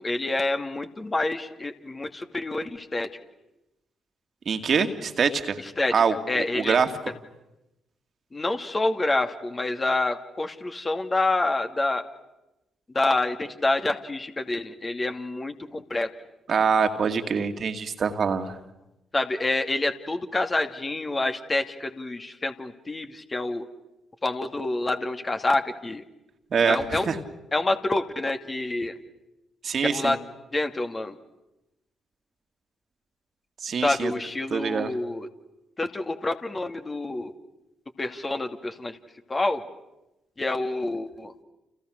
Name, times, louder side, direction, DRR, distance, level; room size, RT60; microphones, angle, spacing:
voice 1, 0.0-3.1 5.6-5.9 6.3-6.8 8.3-12.0 12.9-16.1 19.1-23.6 24.2-26.0 26.7-27.2 27.5-28.9 29.8-30.2 30.5-31.2 33.8-35.3 35.8-37.3 38.0-39.0 39.3-39.6 40.4-41.3, left 2 dB, 30° left, 6 dB, 2.4 m, -27 dB
voice 2, 4.5-5.6 5.9-6.1 6.5-6.9 16.5-18.6 26.5-27.2 29.6-30.1 33.6-34.1 34.5-34.9, right 6 dB, 50° right, 7 dB, 2.3 m, -24 dB
30.0 x 29.5 x 6.6 m, 0.94 s
hypercardioid pair, 40°, 0 cm